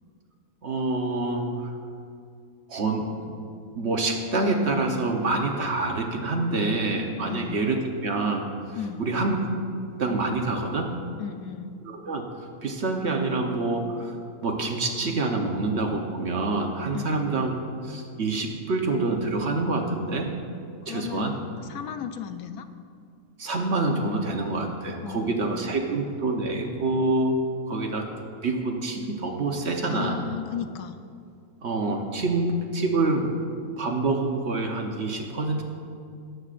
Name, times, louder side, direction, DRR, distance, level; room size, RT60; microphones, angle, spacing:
voice 1, 0.6-1.7 2.7-3.3 3.8-8.5 9.0-9.4 10.0-10.9 11.8-14.2 14.4-17.5 17.8-20.3 20.9-21.3 23.4-27.4 27.7-28.1 28.4-30.2 31.6-33.3 33.8-35.6, right 3 dB, 50° right, 2 dB, 1.1 m, -26 dB
voice 2, 7.3-7.6 8.7-9.1 11.2-11.8 16.9-17.2 20.8-22.7 25.0-26.0 29.9-31.0, left 9 dB, 80° left, 9 dB, 1.0 m, -35 dB
18.5 x 7.9 x 2.5 m, 2.3 s
omnidirectional pair, 1.6 m